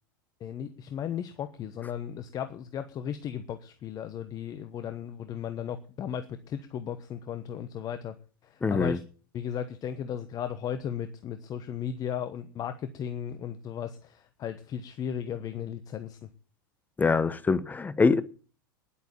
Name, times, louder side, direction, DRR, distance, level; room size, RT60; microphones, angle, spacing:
voice 1, 0.4-8.2 8.4-9.0 9.3-16.3, left 9 dB, 35° left, 1.1 m, -35 dB
voice 2, 8.6-9.0 17.0-18.2, left 4 dB, 15° left, 0.9 m, -24 dB
11.0 x 8.5 x 9.2 m
hypercardioid pair, 95°, 11 cm